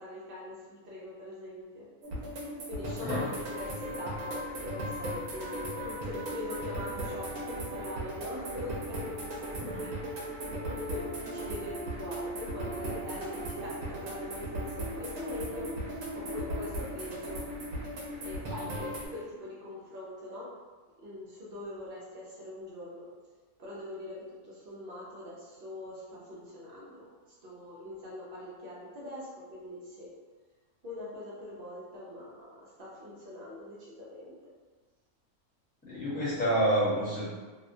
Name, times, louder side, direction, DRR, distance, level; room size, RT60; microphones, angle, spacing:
voice 1, 0.0-1.9 2.7-15.7 16.1-17.4 18.2-20.5 21.0-23.1 23.6-30.1 30.8-34.3, left 1 dB, 55° right, -6 dB, 0.7 m, -43 dB
sound 1, 2.0-19.1, right 1 dB, 75° right, 1.0 m, -37 dB
voice 2, 35.8-37.2, right 1 dB, 5° left, -12 dB, 0.9 m, -28 dB
2.8 x 2.1 x 2.6 m, 1.3 s
omnidirectional pair, 1.4 m